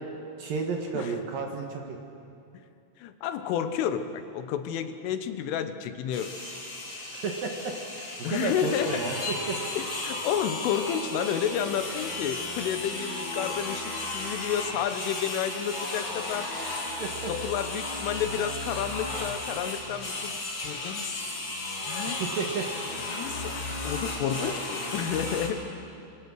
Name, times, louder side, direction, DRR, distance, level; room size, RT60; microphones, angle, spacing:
voice 1, 0.4-2.0 7.2-9.6 17.0-17.3 22.1-22.7 24.4-24.6, right 4 dB, 60° right, 2 dB, 2.7 m, -32 dB
voice 2, 3.0-6.3 8.2-9.0 9.8-16.5 17.0-21.2 21.9-22.2 23.1-25.7, left 9 dB, 90° left, 9 dB, 3.6 m, -31 dB
sound 1, 6.1-25.5, left 2 dB, 30° left, 3.0 m, -34 dB
25.5 x 24.5 x 6.4 m, 2.6 s
omnidirectional pair, 5.6 m